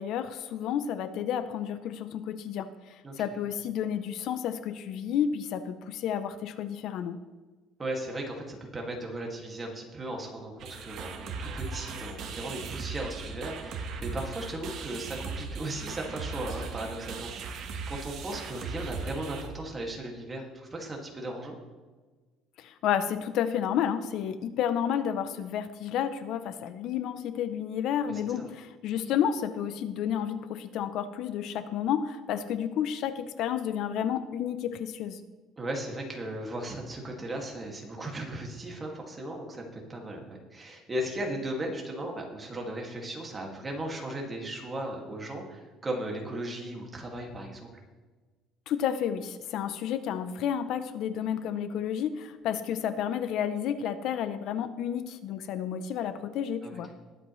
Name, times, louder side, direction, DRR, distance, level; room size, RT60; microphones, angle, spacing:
voice 1, 0.0-7.2 22.6-35.2 48.7-56.9, left 9 dB, 55° left, 11 dB, 0.6 m, -31 dB
voice 2, 7.8-21.6 28.0-28.5 35.6-47.7 56.6-56.9, right 1 dB, 15° right, 0 dB, 2.1 m, -37 dB
sound 1, 10.6-19.5, right 4 dB, 50° right, 1.3 m, -38 dB
20.5 x 8.1 x 3.1 m, 1.3 s
cardioid pair, 155°, 0 cm